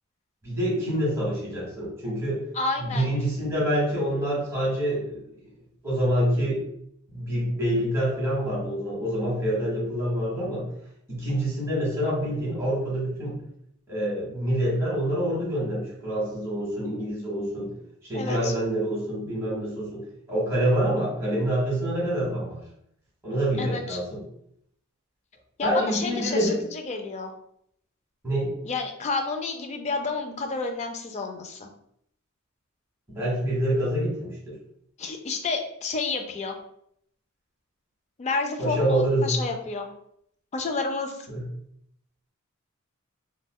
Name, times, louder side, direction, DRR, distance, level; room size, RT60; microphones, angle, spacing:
voice 1, 0.4-2.4 2.8-5.2 5.8-6.6 7.1-10.7 11.1-13.4 13.9-17.7 18.0-22.6 23.2-24.2 25.6-26.6 28.2-28.5 33.1-34.6 38.6-39.4 41.3-41.5, right 1 dB, 15° right, -6 dB, 1.3 m, -26 dB
voice 2, 2.5-3.1 18.1-18.5 23.6-24.0 25.6-27.3 28.6-31.7 35.0-36.6 38.2-39.9 40.5-41.2, left 3 dB, 30° left, 4 dB, 0.3 m, -30 dB
3.5 x 2.2 x 2.2 m, 0.70 s
head